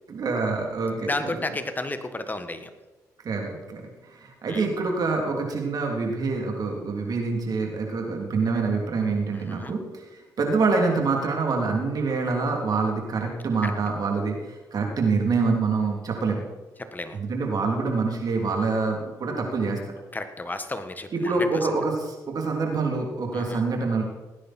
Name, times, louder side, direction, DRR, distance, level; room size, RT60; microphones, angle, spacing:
voice 1, 0.1-1.4 3.2-16.4 17.1-19.8 21.1-24.0, right 4 dB, 60° right, 1 dB, 3.4 m, -26 dB
voice 2, 1.0-2.7 4.5-4.7 9.5-9.7 13.6-13.7 16.8-17.2 20.1-21.7 23.3-23.6, left 2 dB, 25° left, 9 dB, 1.6 m, -32 dB
18.0 x 9.9 x 4.5 m, 1.2 s
supercardioid pair, 60°, 7 cm